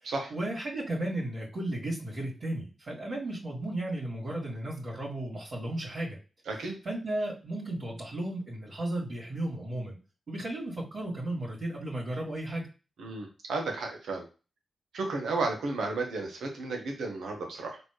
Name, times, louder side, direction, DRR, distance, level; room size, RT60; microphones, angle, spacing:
voice 1, 0.0-6.2 6.8-10.0 10.3-12.7, right 1 dB, 65° right, -8 dB, 2.4 m, -34 dB
voice 2, 6.5-6.8 13.0-14.2 14.9-17.8, right 3 dB, 85° right, 2 dB, 1.2 m, -33 dB
4.2 x 3.0 x 3.1 m, 0.32 s
cardioid pair, 50°, 0 cm